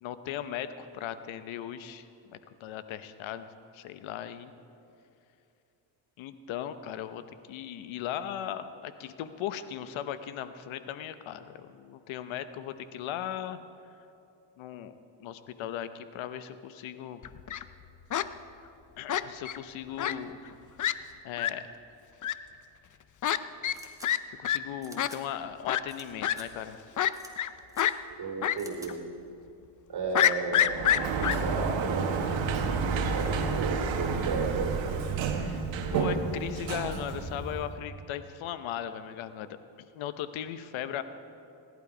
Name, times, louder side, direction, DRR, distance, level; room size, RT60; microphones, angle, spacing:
voice 1, 0.0-3.5 3.7-4.5 6.2-13.6 14.6-17.2 19.0-20.4 21.2-21.7 24.3-26.8 35.4-39.5 39.9-41.0, left 10 dB, 85° left, 12 dB, 0.9 m, -38 dB
Fowl, 17.2-17.6 18.1-18.3 19.1-19.6 20.0-20.1 20.5-20.6 20.8-20.9 21.4-21.5 22.2-22.3 23.2-23.4 23.6-23.8 24.0-24.2 24.4-24.6 25.0-25.1 25.7-25.8 26.2-26.4 27.0-27.5 27.8-27.9 28.4-28.6 28.9-29.0 30.1-31.4, left 11 dB, 40° left, 0.6 m, -26 dB
sound 1, 23.7-24.1 24.8-25.2 25.9-26.0 26.3-26.5 27.1-27.3 27.7-27.9 28.6-28.9, right 2 dB, 5° right, 1.9 m, -48 dB
voice 2, 28.1-28.9 29.9-30.8 31.4-32.1 32.9-35.1, right 4 dB, 55° right, 3 dB, 2.9 m, -34 dB
Sliding door, 30.6-37.8, right 5 dB, 75° right, 1.5 m, -30 dB
18.0 x 11.5 x 5.0 m, 2.7 s
cardioid pair, 85°, 46 cm